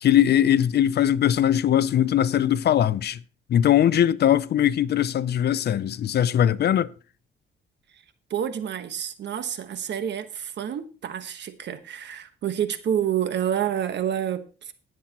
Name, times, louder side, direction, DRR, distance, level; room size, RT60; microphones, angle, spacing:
voice 1, 0.0-3.2 3.5-6.9, left 10 dB, 55° left, 0.5 m, -20 dB
voice 2, 8.3-14.7, right 9 dB, 60° right, 1.3 m, -28 dB
18.5 x 7.4 x 3.0 m
cardioid pair, 90°, 20 cm